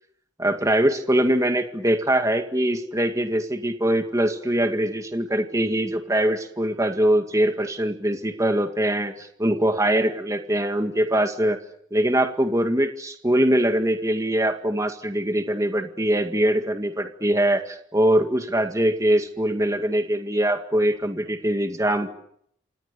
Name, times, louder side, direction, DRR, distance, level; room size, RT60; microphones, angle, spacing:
voice 1, 0.4-11.6 11.9-22.1, right 1 dB, 15° right, 6 dB, 2.0 m, -22 dB
28.0 x 26.5 x 7.0 m, 0.71 s
head